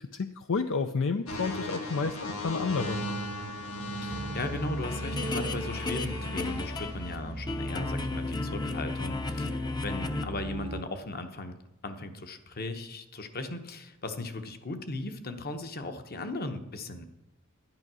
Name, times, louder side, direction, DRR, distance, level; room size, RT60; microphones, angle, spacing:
voice 1, 0.1-3.0, left 4 dB, 65° left, 8 dB, 0.5 m, -30 dB
sound 1, 1.3-7.3 8.0-8.3, left 1 dB, 80° left, 2.1 m, -38 dB
voice 2, 4.0-11.5 11.8-17.0, left 2 dB, 45° left, 8 dB, 1.0 m, -37 dB
sound 2, 4.1-10.8, right 1 dB, 25° right, 0.7 m, -37 dB
sound 3, 4.4-7.2 7.5-10.2, left 3 dB, 20° left, 0.7 m, -35 dB
11.0 x 9.7 x 6.1 m, 0.97 s
head